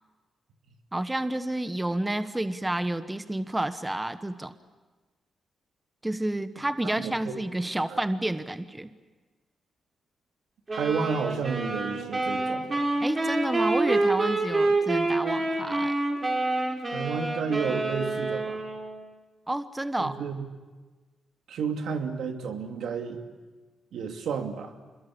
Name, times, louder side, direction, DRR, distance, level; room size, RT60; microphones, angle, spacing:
voice 1, 0.9-4.5 6.0-8.9 13.0-15.9 19.5-20.1, right 1 dB, 10° right, 11 dB, 1.1 m, -30 dB
voice 2, 6.8-7.4 7.9-8.0 10.7-12.9 16.9-18.6 20.0-20.4 21.5-23.2 23.9-24.7, right 6 dB, 85° right, 4 dB, 2.7 m, -31 dB
sound 1, 10.7-19.1, right 2 dB, 30° right, 4.9 m, -27 dB
27.0 x 22.0 x 8.7 m, 1.2 s
cardioid pair, 90°, 0 cm